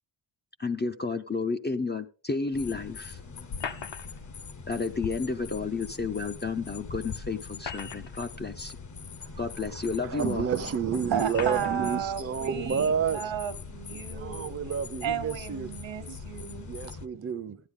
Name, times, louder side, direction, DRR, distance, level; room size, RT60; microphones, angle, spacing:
voice 1, 0.6-3.2 4.7-8.8 9.4-10.5, left 4 dB, 25° left, 0.4 m, -31 dB
sound 1, 2.5-17.1, left 5 dB, 40° left, 0.8 m, -42 dB
sound 2, 3.5-4.3 6.0-6.1 7.4-8.3 9.2-9.3 10.2-10.3 11.3-11.8, left 6 dB, 65° left, 0.9 m, -38 dB
voice 2, 10.1-13.2 14.1-15.7 16.6-17.6, right 7 dB, 30° right, 0.6 m, -30 dB
voice 3, 10.9-14.5 15.0-16.7, right 8 dB, 70° right, 1.1 m, -33 dB
13.5 x 9.7 x 3.6 m
wide cardioid pair, 165°, 47 cm